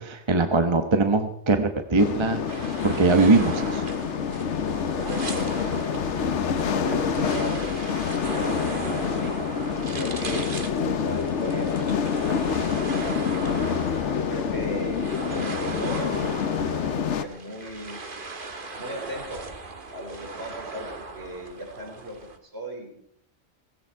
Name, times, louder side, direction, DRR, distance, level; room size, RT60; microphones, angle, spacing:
voice 1, 0.0-2.4 2.8-3.8, right 3 dB, 25° right, 7 dB, 1.1 m, -21 dB
sound 1, 2.0-17.2, left 7 dB, 85° left, 1.2 m, -27 dB
sound 2, 2.5-22.4, right 3 dB, 50° right, 1.7 m, -37 dB
voice 2, 4.9-8.3 8.9-9.4 9.9-12.6 12.9-13.7 14.3-16.3 16.6-18.0 18.8-19.4 19.9-22.9, right 1 dB, 65° right, 1 dB, 4.7 m, -38 dB
16.5 x 16.5 x 4.6 m, 0.66 s
omnidirectional pair, 1.2 m